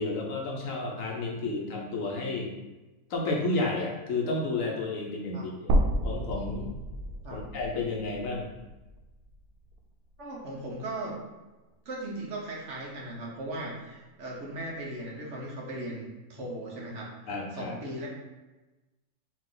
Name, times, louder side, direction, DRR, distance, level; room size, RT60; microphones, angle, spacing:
voice 1, 0.0-2.6 3.1-5.7 6.0-6.7 7.3-8.6 17.3-17.7, left 2 dB, 70° left, -1 dB, 1.1 m, -31 dB
sound 1, 5.7-9.8 10.2-10.3 11.7-11.8, right 1 dB, 85° right, 1.1 m, -31 dB
voice 2, 10.2-11.1 11.8-17.1 17.5-18.1, right 1 dB, 55° right, -3 dB, 1.1 m, -38 dB
4.7 x 2.4 x 3.8 m, 1.1 s
omnidirectional pair, 1.5 m